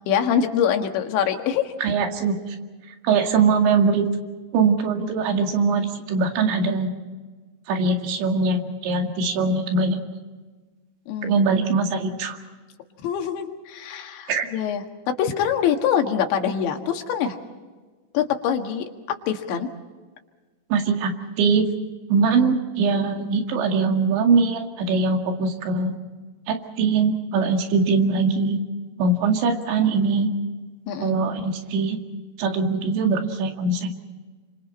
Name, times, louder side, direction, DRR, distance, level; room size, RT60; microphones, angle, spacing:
voice 1, 0.1-1.7 11.1-11.4 13.0-17.4 18.1-19.7 30.9-31.2, left 8 dB, 85° left, 4 dB, 4.0 m, -24 dB
voice 2, 1.8-2.6 3.0-4.1 4.5-6.9 7.7-10.0 11.2-12.4 14.3-14.5 20.7-21.1 21.4-21.7 22.1-26.0 26.5-28.6 29.0-30.3 31.0-32.0 32.4-33.9, right 4 dB, 85° right, 4 dB, 4.5 m, -22 dB
29.5 x 26.0 x 4.4 m, 1.4 s
omnidirectional pair, 5.1 m